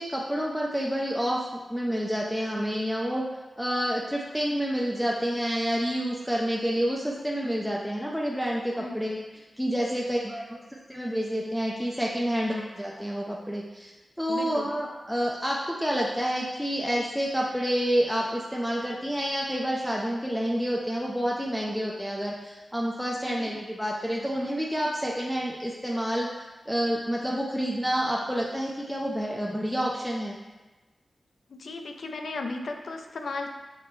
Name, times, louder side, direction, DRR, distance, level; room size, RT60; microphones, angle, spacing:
voice 1, 0.0-3.3 3.6-9.2 9.6-13.9 14.2-26.3 26.7-30.4, equal, ahead, -3 dB, 0.4 m, -28 dB
voice 2, 14.3-14.7 23.2-23.5 31.5-33.5, left 3 dB, 75° left, 4 dB, 0.4 m, -35 dB
5.0 x 2.1 x 4.5 m, 1.2 s
wide cardioid pair, 85°, 0 cm